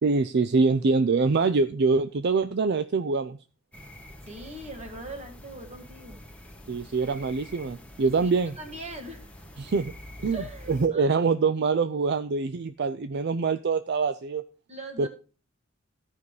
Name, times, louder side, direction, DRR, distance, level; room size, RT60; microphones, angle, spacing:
voice 1, 0.0-3.4 6.7-8.6 9.6-9.9 10.2-14.4 15.0-15.1, right 4 dB, 55° right, 11 dB, 0.5 m, -24 dB
sound 1, 3.7-10.9, left 1 dB, 5° left, 1.3 m, -46 dB
voice 2, 4.3-6.2 8.2-9.5 10.3-11.1 14.7-15.1, right 2 dB, 35° right, 3 dB, 1.8 m, -41 dB
14.0 x 5.4 x 4.8 m, 0.36 s
head